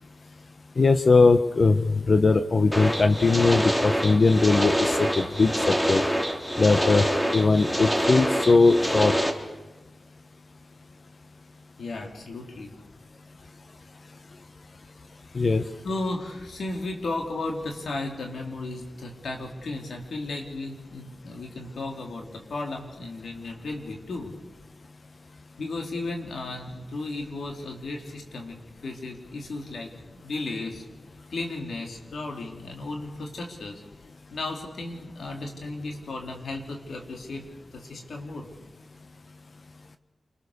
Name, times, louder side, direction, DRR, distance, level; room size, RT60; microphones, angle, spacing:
voice 1, 0.8-6.0 6.6-7.1 7.3-9.1 15.3-15.6, left 3 dB, 55° left, 10 dB, 1.1 m, -20 dB
sound 1, 2.7-9.3, equal, 10° left, 3.4 m, -26 dB
voice 2, 11.8-12.7 15.8-24.4 25.6-28.6 28.8-30.8 31.3-33.8 34.3-37.5 37.7-38.5, left 2 dB, 80° left, 2 dB, 4.0 m, -34 dB
28.5 x 22.5 x 6.8 m, 1.2 s
cardioid pair, 50°, 0 cm